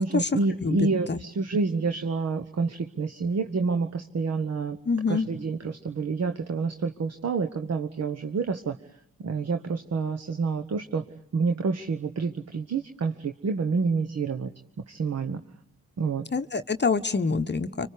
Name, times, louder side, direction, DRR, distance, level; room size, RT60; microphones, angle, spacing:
voice 1, 0.0-4.8 5.1-8.8 9.2-11.0 11.3-14.5 14.9-15.4 16.0-16.2, right 4 dB, 45° right, 7 dB, 1.2 m, -28 dB
voice 2, 0.6-1.2 4.9-5.3 16.3-17.9, left 4 dB, 30° left, 8 dB, 1.0 m, -26 dB
26.0 x 24.5 x 8.4 m, 0.77 s
supercardioid pair, 50°, 36 cm